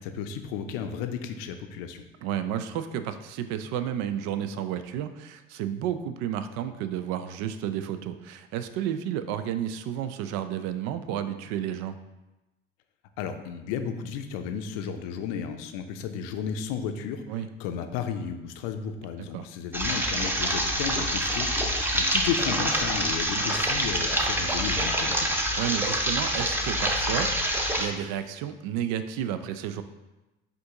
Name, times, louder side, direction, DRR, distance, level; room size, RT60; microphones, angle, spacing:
voice 1, 0.0-2.0 13.2-25.3, left 7 dB, 75° left, 7 dB, 0.5 m, -33 dB
voice 2, 2.2-12.0 17.3-17.5 19.3-19.5 23.3-23.4 25.5-29.8, right 10 dB, 65° right, 11 dB, 0.4 m, -32 dB
sound 1, 19.7-27.9, equal, 5° right, 0.7 m, -26 dB
5.0 x 2.6 x 3.6 m, 1.0 s
hypercardioid pair, 60°, 29 cm